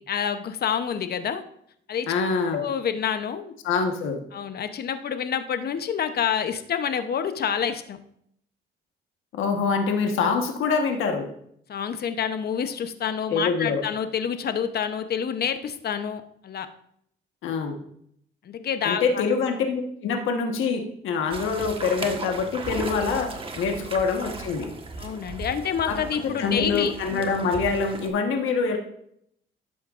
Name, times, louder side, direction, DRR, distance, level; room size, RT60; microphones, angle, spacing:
voice 1, 0.1-1.4 1.9-2.1 2.5-3.5 4.3-8.0 11.7-16.7 18.4-19.2 23.8-23.9 25.0-27.0, left 8 dB, 55° left, 10 dB, 0.8 m, -28 dB
voice 2, 2.1-2.6 3.6-4.2 9.3-11.3 13.3-13.8 17.4-17.8 18.8-24.7 25.9-28.8, left 5 dB, 85° left, 4 dB, 1.3 m, -25 dB
sound 1, 21.3-28.1, right 3 dB, 25° right, 1.4 m, -37 dB
12.5 x 8.6 x 2.5 m, 0.70 s
cardioid pair, 90°, 20 cm